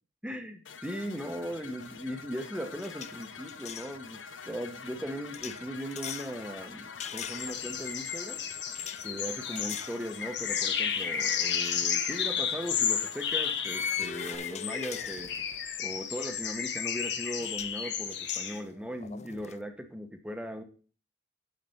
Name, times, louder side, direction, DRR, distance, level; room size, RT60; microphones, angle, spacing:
voice 1, 0.2-8.4 9.0-15.3 15.8-20.6, equal, 5° right, 6 dB, 1.0 m, -38 dB
sound 1, 0.6-14.4, left 5 dB, 85° left, 0.8 m, -46 dB
sound 2, 1.8-2.1 2.3-3.9 5.3-6.3 7.0-7.9 8.8-9.1 9.6-10.0 10.5-10.6 12.2-12.3 13.6-15.7 17.1-17.2 17.4-17.8 18.1-19.6, left 8 dB, 35° left, 0.4 m, -40 dB
sound 3, 7.3-18.6, left 7 dB, 65° left, 1.1 m, -32 dB
7.6 x 5.2 x 6.9 m, 0.39 s
head